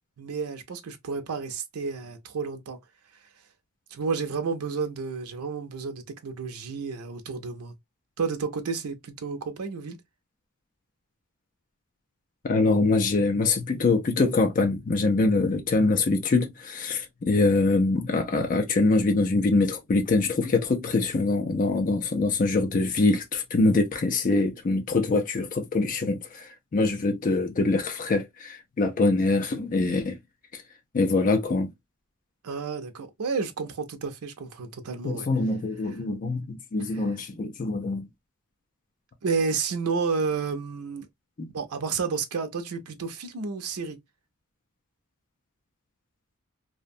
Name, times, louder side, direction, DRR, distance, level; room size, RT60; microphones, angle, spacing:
voice 1, 0.2-2.8 3.9-7.7 8.2-10.0 32.4-35.3 35.9-36.0 36.9-37.1 39.2-41.1 41.5-44.0, right 5 dB, 85° right, 0.5 m, -31 dB
voice 2, 12.4-30.2 30.5-30.6 30.9-31.7 35.0-38.1 41.4-41.5, left 3 dB, 35° left, 0.4 m, -24 dB
2.6 x 2.1 x 2.5 m
head